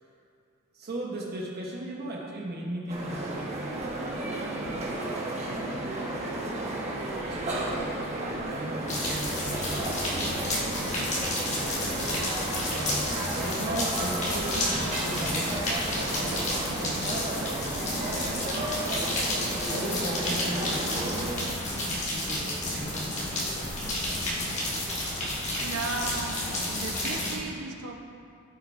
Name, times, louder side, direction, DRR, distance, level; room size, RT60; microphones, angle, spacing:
voice 1, 0.7-7.7 8.0-11.1 11.5-12.2 12.7-17.8 18.5-19.1 19.5-21.6 22.1-23.7, right 1 dB, 45° right, -2 dB, 1.0 m, -38 dB
sound 1, 2.9-21.4, right 1 dB, 30° right, 1.2 m, -33 dB
sound 2, 8.9-27.4, left 1 dB, 30° left, 1.6 m, -31 dB
voice 2, 25.5-26.4 26.7-27.9, right 3 dB, 70° right, 2 dB, 0.9 m, -35 dB
13.5 x 8.0 x 2.6 m, 2.4 s
head